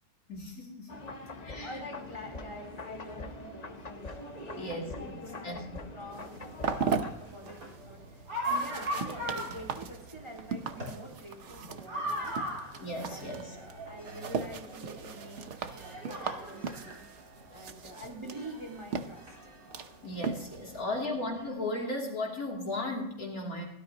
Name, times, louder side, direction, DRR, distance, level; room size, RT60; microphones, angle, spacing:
voice 1, 0.3-1.0 1.4-1.7 4.6-5.2 5.4-6.1 12.8-13.6 20.0-23.6, left 2 dB, 55° left, -1 dB, 3.3 m, -36 dB
sound 1, 0.9-7.1, left 3 dB, 40° left, 0.6 m, -43 dB
voice 2, 1.4-4.2 4.5-12.7 13.0-17.0 17.5-19.5, equal, 15° right, 1 dB, 1.9 m, -47 dB
sound 2, 1.7-21.5, right 1 dB, 75° right, 4.8 m, -42 dB
sound 3, 6.1-20.8, right 5 dB, 50° right, 1.0 m, -39 dB
17.5 x 12.5 x 2.9 m, 0.84 s
omnidirectional pair, 1.8 m